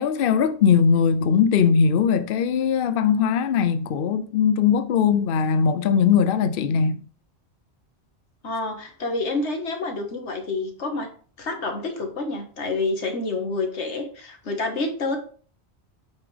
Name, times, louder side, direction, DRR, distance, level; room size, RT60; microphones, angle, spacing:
voice 1, 0.0-7.0, left 7 dB, 60° left, 0.7 m, -20 dB
voice 2, 8.4-11.1 11.4-15.2, left 3 dB, 90° left, 1.8 m, -28 dB
8.2 x 5.7 x 3.4 m
omnidirectional pair, 1.1 m